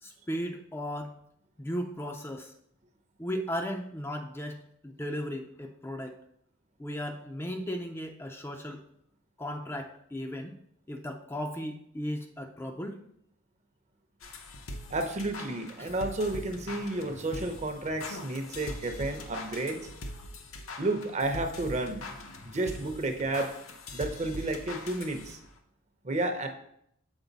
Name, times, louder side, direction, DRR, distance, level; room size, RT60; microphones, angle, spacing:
voice 1, 0.0-1.2 1.6-2.5 3.2-6.2 6.8-8.8 9.4-10.6 10.9-13.0 15.8-15.9, equal, 10° left, 3 dB, 0.4 m, -36 dB
sound 1, 14.2-25.6, left 1 dB, 85° left, 0.9 m, -42 dB
voice 2, 14.9-19.9 20.8-22.1 22.4-23.6 23.9-25.4 26.0-26.5, right 2 dB, 35° right, 6 dB, 0.7 m, -31 dB
7.1 x 4.6 x 4.0 m, 0.73 s
head